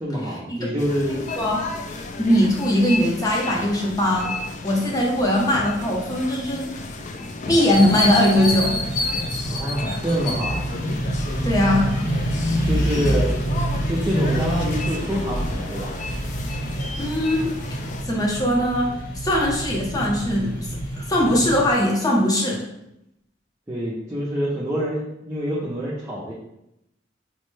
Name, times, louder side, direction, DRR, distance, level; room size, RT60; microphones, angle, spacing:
voice 1, 0.0-1.2 9.4-10.6 12.6-13.3 13.9-15.9 23.7-26.3, equal, 15° right, -6 dB, 0.6 m, -26 dB
sound 1, 0.8-18.0, left 3 dB, 40° left, 0.3 m, -33 dB
voice 2, 2.2-4.3 4.6-6.7 7.5-8.7 11.4-11.9 17.0-17.5 18.1-18.9 19.1-22.6, left 1 dB, 20° left, -3 dB, 0.7 m, -20 dB
sound 2, 7.7-21.7, equal, 60° left, 1.1 m, -27 dB
4.2 x 2.1 x 3.2 m, 0.84 s
head